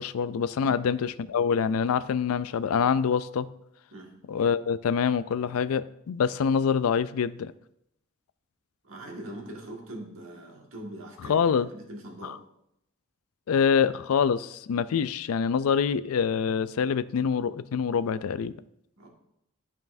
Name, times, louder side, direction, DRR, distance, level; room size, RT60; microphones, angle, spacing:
voice 1, 0.0-3.5 4.3-7.5 11.3-11.7 12.2-12.3 13.5-18.5, left 6 dB, 85° left, 15 dB, 0.4 m, -25 dB
voice 2, 8.8-12.4 19.0-19.1, right 1 dB, 70° right, 0 dB, 1.7 m, -42 dB
12.5 x 5.5 x 2.6 m, 0.78 s
head